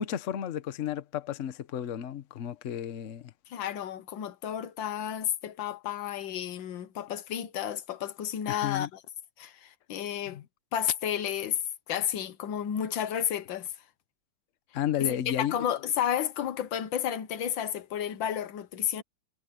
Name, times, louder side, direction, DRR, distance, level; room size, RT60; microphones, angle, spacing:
voice 1, 0.0-3.3 8.5-8.9 10.3-10.4 14.7-15.6, left 10 dB, 50° left, 1.1 m, -32 dB
voice 2, 3.5-9.0 9.4-10.4 10.7-11.6 11.9-13.7 15.0-19.0, left 9 dB, 90° left, 1.7 m, -32 dB
omnidirectional pair, 2.0 m